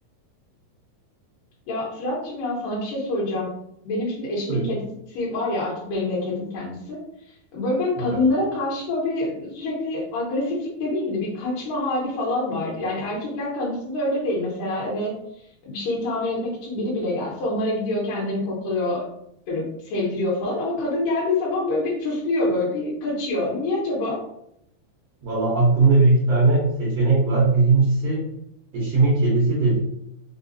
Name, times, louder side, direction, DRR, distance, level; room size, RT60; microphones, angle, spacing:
voice 1, 1.7-3.5 3.9-7.0 7.5-15.1 15.6-19.0 19.5-24.2, left 2 dB, 70° left, -6 dB, 2.3 m, -26 dB
voice 2, 25.2-28.2 28.7-29.8, right 3 dB, 80° right, -6 dB, 1.4 m, -19 dB
5.5 x 2.2 x 2.6 m, 0.76 s
omnidirectional pair, 4.2 m